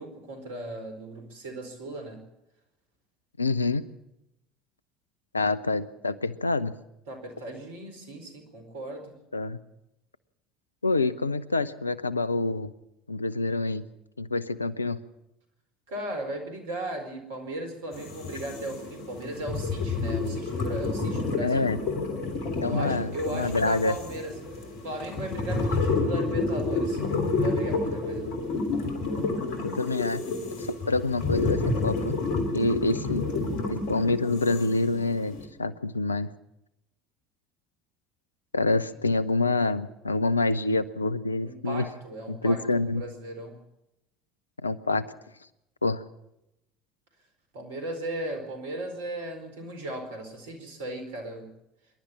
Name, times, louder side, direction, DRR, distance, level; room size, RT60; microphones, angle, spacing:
voice 1, 0.0-2.2 7.1-9.1 15.9-21.8 22.6-24.3 24.8-27.0 27.3-28.4 38.9-39.0 41.4-43.6 47.5-51.5, right 1 dB, 70° right, 6 dB, 4.4 m, -37 dB
voice 2, 3.4-3.9 5.3-6.7 9.3-9.6 10.8-12.7 13.1-13.8 14.2-15.0 21.4-21.8 22.6-23.9 29.6-30.2 30.7-32.2 32.5-33.3 33.7-36.3 38.5-41.9 42.3-43.0 44.6-45.0 45.8-46.0, left 3 dB, 85° left, 16 dB, 0.7 m, -26 dB
sound 1, 17.9-35.5, left 3 dB, 60° left, 3.3 m, -30 dB
26.0 x 11.5 x 8.6 m, 0.87 s
figure-of-eight pair, 65°, 0 cm